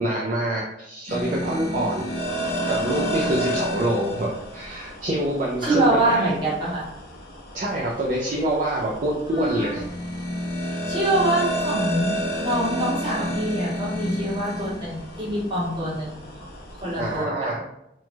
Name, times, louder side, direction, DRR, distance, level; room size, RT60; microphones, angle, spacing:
voice 1, 0.0-2.1 2.7-6.3 7.5-9.9 17.0-17.6, right 1 dB, 45° right, -3 dB, 0.4 m, -26 dB
sound 1, 1.1-17.2, equal, 60° left, 0.6 m, -31 dB
voice 2, 5.6-6.9 9.3-9.8 10.9-16.3 16.8-17.6, right 1 dB, 25° right, -7 dB, 1.1 m, -25 dB
3.0 x 2.3 x 2.6 m, 0.83 s
head